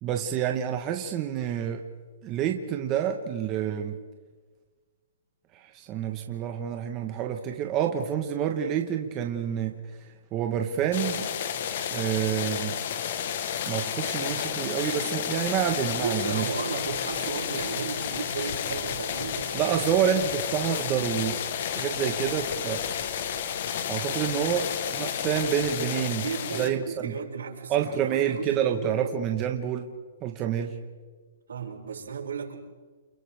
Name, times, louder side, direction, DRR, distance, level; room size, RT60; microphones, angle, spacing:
voice 1, 0.0-1.8 2.2-4.0 5.5-9.7 10.3-11.3 11.9-12.8 13.7-16.4 19.5-21.4 21.7-22.8 23.9-26.2 26.6-26.8 27.0-27.1 27.7-29.9 30.2-30.8, right 9 dB, 20° right, 3 dB, 1.2 m, -28 dB
sound 1, 10.9-26.7, left 8 dB, 45° left, 1.2 m, -31 dB
voice 2, 16.0-19.9 26.1-29.1 31.5-32.5, right 6 dB, 90° right, -2 dB, 6.1 m, -35 dB
29.5 x 29.0 x 3.5 m, 1.4 s
hypercardioid pair, 170°, 0 cm